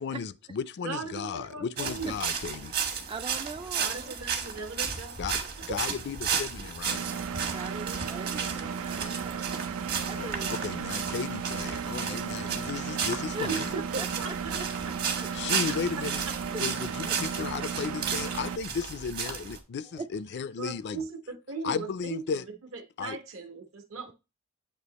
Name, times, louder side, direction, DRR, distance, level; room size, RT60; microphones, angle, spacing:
voice 1, 0.0-2.7 5.2-7.0 10.1-13.7 15.3-16.2 16.6-21.0 21.6-22.4 23.0-23.2, left 6 dB, 55° left, 0.4 m, -35 dB
voice 2, 0.8-2.2 3.8-5.2 5.7-5.8 7.8-8.3 13.5-15.3 15.7-15.8 20.6-22.4 22.7-24.1, right 4 dB, 70° right, 1.2 m, -38 dB
sound 1, 1.8-19.6, right 6 dB, 50° right, 1.2 m, -34 dB
voice 3, 3.1-4.1 7.4-9.5 10.1-10.7 13.3-13.5 14.0-14.1 16.5-16.6 17.0-17.2 19.9-20.1, right 3 dB, 25° right, 0.3 m, -40 dB
Engine, 6.9-18.6, right 6 dB, 90° right, 0.5 m, -35 dB
8.0 x 2.9 x 4.1 m
head